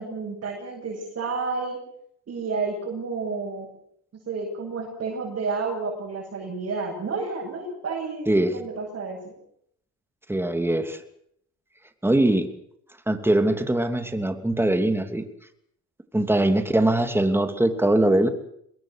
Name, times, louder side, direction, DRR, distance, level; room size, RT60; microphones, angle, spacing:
voice 1, 0.0-1.8 2.3-3.7 4.3-9.3, right 4 dB, 50° right, -2 dB, 7.9 m, -30 dB
voice 2, 8.3-8.6 10.3-11.0 12.0-12.5 13.1-15.2 16.1-18.3, right 1 dB, 10° right, 7 dB, 3.0 m, -22 dB
25.0 x 21.5 x 6.7 m, 0.70 s
cardioid pair, 90°, 30 cm